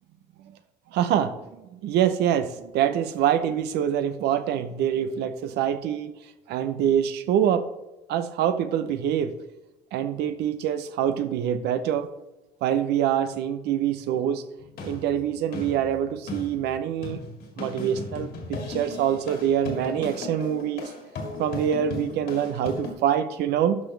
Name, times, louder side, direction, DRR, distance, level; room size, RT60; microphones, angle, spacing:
voice 1, 0.9-6.1 6.5-7.6 8.1-9.3 9.9-12.1 12.6-14.4 14.8-17.2 17.6-20.9 21.4-23.8, right 9 dB, 80° right, 11 dB, 0.7 m, -25 dB
sound 1, 14.6-22.9, left 2 dB, 65° left, 2.3 m, -36 dB
12.0 x 5.0 x 3.3 m, 1.0 s
cardioid pair, 110°, 17 cm